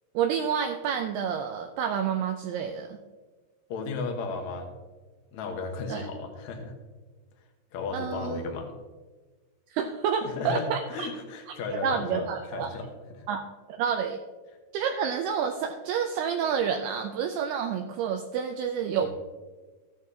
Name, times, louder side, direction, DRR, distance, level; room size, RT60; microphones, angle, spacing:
voice 1, 0.1-3.0 5.9-6.1 7.9-8.4 9.7-11.1 11.7-12.7 13.3-13.4 13.7-14.2 14.7-19.1, right 7 dB, 85° right, 5 dB, 2.3 m, -29 dB
voice 2, 3.7-4.8 5.3-6.7 7.7-8.8 10.2-13.2 18.9-19.1, left 4 dB, 85° left, 3 dB, 1.6 m, -34 dB
15.0 x 8.8 x 2.8 m, 1.3 s
omnidirectional pair, 5.2 m